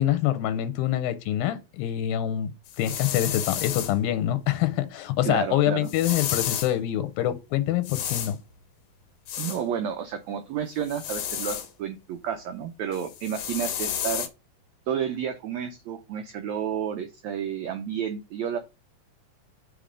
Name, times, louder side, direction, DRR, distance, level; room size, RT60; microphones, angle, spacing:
voice 1, 0.0-2.5 2.8-8.4, left 12 dB, 90° left, 2.5 m, -25 dB
sound 1, 2.7-3.9 5.9-6.7 7.8-8.3 9.3-9.6 10.9-11.7 12.9-14.3, left 9 dB, 70° left, 1.7 m, -31 dB
voice 2, 5.2-5.9 9.4-14.3 14.9-18.6, right 8 dB, 80° right, 1.6 m, -31 dB
5.3 x 5.1 x 5.0 m
omnidirectional pair, 4.0 m